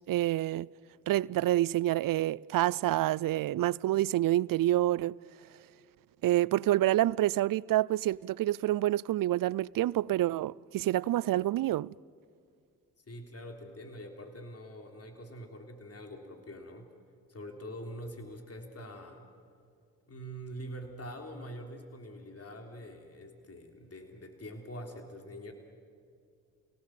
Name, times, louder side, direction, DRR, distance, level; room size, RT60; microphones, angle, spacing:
voice 1, 0.1-0.7 1.1-5.2 6.2-11.9, right 14 dB, 60° right, 0.5 m, -27 dB
voice 2, 13.1-16.9 17.3-19.2 20.1-25.5, equal, 40° left, 3.5 m, -44 dB
28.5 x 18.0 x 7.7 m
hypercardioid pair, 45°, 39 cm